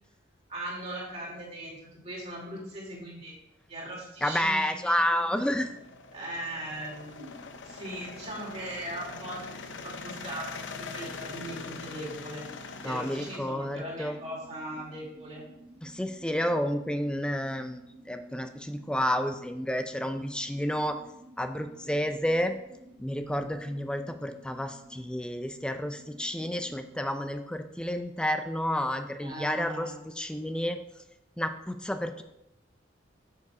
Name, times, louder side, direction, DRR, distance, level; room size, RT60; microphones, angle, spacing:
voice 1, 0.5-3.3 3.7-5.2 6.1-7.4 7.6-12.5 12.8-15.4 29.2-30.0, right 1 dB, 35° right, -3 dB, 2.5 m, -39 dB
voice 2, 4.2-5.7 12.8-14.2 15.8-17.8 18.1-21.0 21.4-22.5 23.0-30.8 31.4-32.2, equal, 5° left, 7 dB, 0.4 m, -30 dB
sound 1, 4.6-13.4, left 4 dB, 80° left, 0.7 m, -43 dB
sound 2, 11.0-27.0, right 1 dB, 15° right, 1.2 m, -53 dB
7.1 x 6.8 x 4.9 m, 0.88 s
head